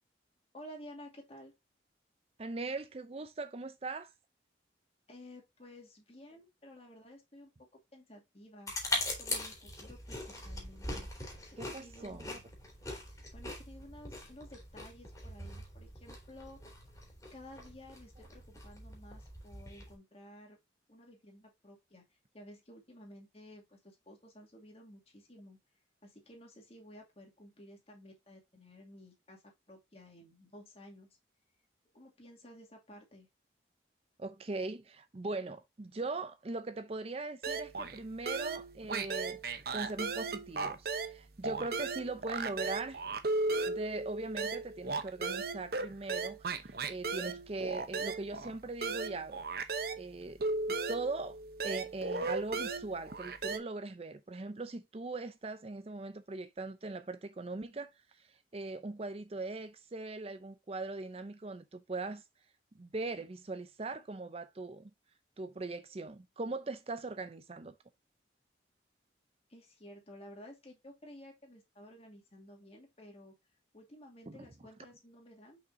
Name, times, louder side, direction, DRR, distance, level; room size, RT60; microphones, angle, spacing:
voice 1, 0.5-1.5 5.1-8.7 9.1-11.1 11.5-12.4 13.1-16.6 17.3-20.6 20.9-25.6 26.0-31.1 31.9-33.3 69.5-73.3 73.7-75.6, left 1 dB, 35° left, 2.4 m, -54 dB
voice 2, 2.4-4.1 11.6-12.4 34.2-39.4 39.7-43.0 43.7-49.4 50.0-50.4 50.7-51.4 51.6-57.9 58.2-62.2 62.7-64.9 65.4-67.7 74.3-74.4, right 3 dB, 35° right, 0.5 m, -40 dB
sound 1, 8.7-19.9, left 1 dB, 15° left, 2.8 m, -42 dB
sound 2, 37.4-38.0 38.3-41.2 41.4-50.0 50.4-53.6, right 3 dB, 55° right, 0.8 m, -36 dB
6.4 x 5.5 x 2.6 m
head